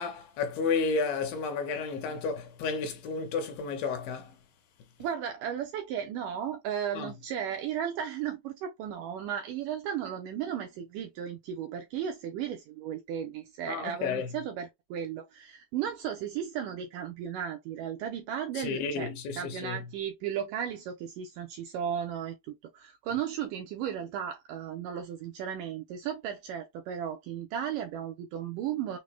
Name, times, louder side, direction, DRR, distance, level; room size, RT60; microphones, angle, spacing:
voice 1, 0.0-4.4 6.9-7.1 13.7-14.3 18.6-19.8, left 5 dB, 75° left, 2.6 m, -32 dB
voice 2, 5.0-19.1 19.4-29.0, right 9 dB, 75° right, 2.0 m, -35 dB
6.4 x 2.3 x 3.2 m
omnidirectional pair, 4.5 m